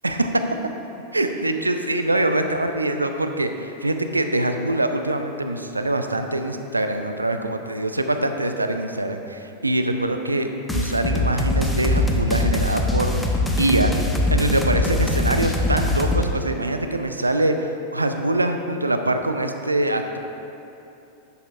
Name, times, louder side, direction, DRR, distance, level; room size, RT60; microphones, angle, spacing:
voice 1, 1.1-13.9 14.3-20.2, right 1 dB, 80° right, 7 dB, 0.4 m, -24 dB
sound 1, 10.7-16.2, left 2 dB, 10° left, 0.7 m, -22 dB
10.5 x 6.8 x 2.4 m, 2.8 s
figure-of-eight pair, 90°, 0 cm